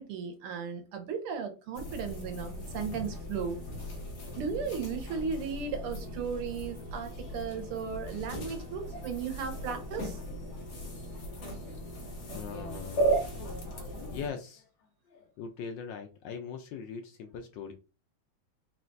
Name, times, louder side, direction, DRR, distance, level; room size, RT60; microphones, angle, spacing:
voice 1, 0.0-3.6 4.3-10.2, right 6 dB, 85° right, 1.9 m, -36 dB
sound 1, 1.7-14.3, right 2 dB, 55° left, 1.4 m, -36 dB
voice 2, 10.5-11.4 12.3-13.2 13.7-17.7, left 6 dB, 75° left, 1.1 m, -42 dB
4.4 x 2.4 x 3.8 m
omnidirectional pair, 2.4 m